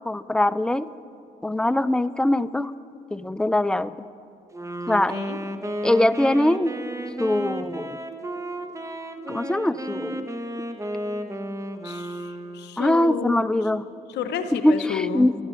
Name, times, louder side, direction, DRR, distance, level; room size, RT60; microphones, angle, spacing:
voice 1, 0.1-0.9 1.4-2.7 3.1-3.9 4.9-5.2 5.8-6.7 7.2-8.0 9.3-10.3 12.8-13.9 14.6-15.4, left 1 dB, 5° left, 16 dB, 0.4 m, -22 dB
Wind instrument woodwind instrument, 4.5-12.8, right 1 dB, 15° right, 1.1 m, -33 dB
voice 2, 11.8-13.4 14.1-15.3, left 7 dB, 75° left, 9 dB, 0.7 m, -31 dB
12.5 x 9.8 x 6.2 m, 2.5 s
supercardioid pair, 55°, 18 cm